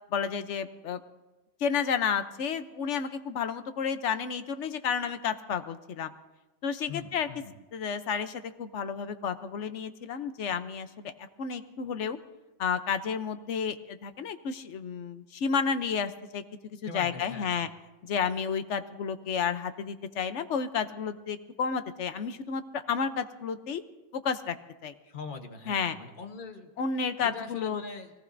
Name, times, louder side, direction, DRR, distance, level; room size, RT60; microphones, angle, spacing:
voice 1, 0.1-1.0 1.6-6.1 6.6-7.3 7.7-12.2 12.6-17.7 18.0-23.8 24.1-24.5 24.8-24.9 25.7-26.0 26.8-27.8, left 6 dB, 70° left, 10 dB, 1.1 m, -31 dB
voice 2, 6.9-7.5 16.8-17.6 25.0-26.7 27.2-28.1, left 4 dB, 45° left, 5 dB, 1.3 m, -42 dB
23.0 x 18.0 x 2.6 m, 1.1 s
omnidirectional pair, 1.3 m